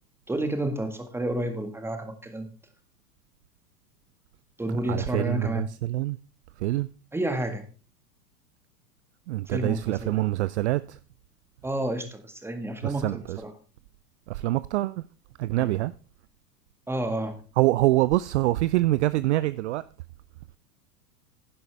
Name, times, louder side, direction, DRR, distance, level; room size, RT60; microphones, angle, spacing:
voice 1, 0.3-2.5 4.6-5.7 7.1-7.6 9.5-10.2 11.6-13.5 15.5-15.8 16.9-17.4, right 1 dB, 5° right, 1.7 m, -30 dB
voice 2, 4.9-6.2 6.6-6.9 9.3-11.0 12.8-13.4 14.3-15.0 15.4-15.9 17.6-19.8, right 17 dB, 50° right, 0.5 m, -25 dB
11.0 x 10.5 x 3.4 m
figure-of-eight pair, 95°, 48 cm